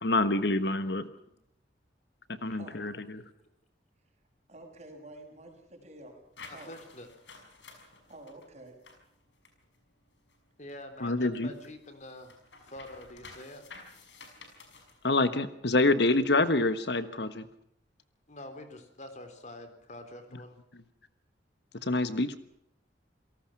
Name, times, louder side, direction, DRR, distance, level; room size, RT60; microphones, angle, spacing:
voice 1, 0.0-1.0 2.4-3.2 11.0-11.5 15.0-17.5 21.8-22.4, left 2 dB, 65° left, 12 dB, 1.4 m, -26 dB
voice 2, 2.5-2.9 3.2-3.4 6.5-7.1 10.6-12.3 12.6-13.6 18.3-20.6, left 1 dB, 40° left, 8 dB, 3.7 m, -46 dB
voice 3, 4.5-6.2 6.5-6.7 8.1-8.7, right 1 dB, 40° right, 4 dB, 6.5 m, -49 dB
sound 1, 6.3-10.6 10.9-15.2, left 4 dB, 80° left, 5.9 m, -52 dB
28.0 x 18.5 x 6.0 m, 0.73 s
head